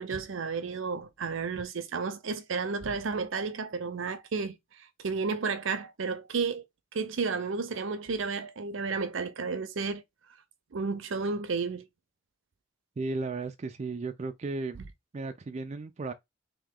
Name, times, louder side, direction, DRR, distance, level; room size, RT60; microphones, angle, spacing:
voice 1, 0.0-4.6 5.0-6.6 6.9-10.0 10.7-11.9, right 4 dB, 75° right, 0.6 m, -32 dB
voice 2, 13.0-14.8 15.1-16.1, right 3 dB, 35° right, 0.4 m, -35 dB
2.9 x 2.8 x 3.6 m
head